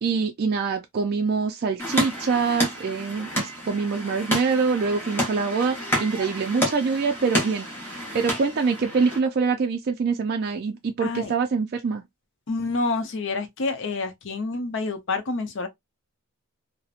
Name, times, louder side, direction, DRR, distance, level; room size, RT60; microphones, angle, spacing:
voice 1, 0.0-12.0, right 5 dB, 45° right, 0.3 m, -25 dB
sound 1, 1.8-9.2, equal, 10° left, 0.8 m, -29 dB
voice 2, 11.0-11.3 12.5-15.7, left 3 dB, 55° left, 0.6 m, -28 dB
2.8 x 2.0 x 2.3 m
head